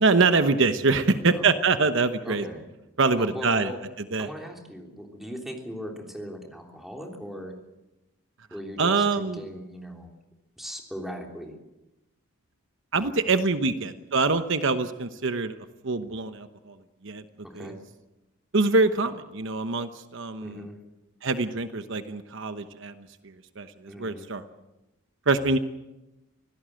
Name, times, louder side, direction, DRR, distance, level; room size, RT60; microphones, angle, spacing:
voice 1, 0.0-2.4 3.0-3.7 4.1-4.3 8.8-9.4 12.9-15.6 15.8-16.8 17.0-17.2 17.5-17.7 18.5-20.7 21.2-24.4 25.3-25.6, right 3 dB, 60° right, 9 dB, 1.0 m, -24 dB
voice 2, 1.1-1.5 2.2-2.7 3.1-3.8 4.2-7.5 8.5-10.1 10.6-11.6 13.3-13.4 17.4-17.8 20.4-20.8 23.9-24.3, equal, ahead, 1 dB, 3.4 m, -39 dB
25.5 x 16.5 x 7.7 m, 0.98 s
head